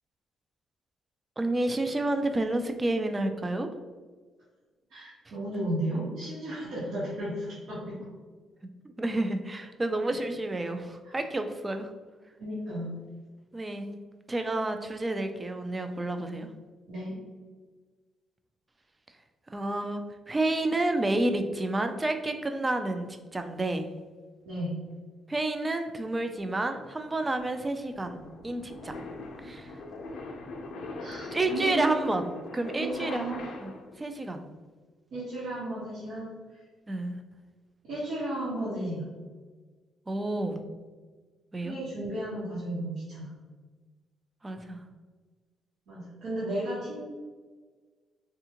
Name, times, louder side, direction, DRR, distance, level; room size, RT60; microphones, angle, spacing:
voice 1, 1.4-3.7 9.0-11.9 13.5-13.9 14.3-16.5 19.5-23.9 25.3-29.0 29.4-29.7 31.3-33.3 33.6-34.4 36.9-37.2 40.1-40.6 41.5-41.7 44.4-44.8, right 2 dB, 20° right, 7 dB, 0.3 m, -30 dB
voice 2, 4.9-8.1 11.0-11.2 12.4-12.9 16.9-17.2 24.5-24.7 31.0-32.0 32.8-33.4 35.1-36.6 37.8-39.1 41.6-43.3 45.9-47.0, right 1 dB, 80° right, -9 dB, 1.1 m, -34 dB
sound 1, 26.4-34.0, left 2 dB, 70° left, 0.5 m, -41 dB
3.5 x 2.4 x 2.8 m, 1.4 s
cardioid pair, 90°, 0 cm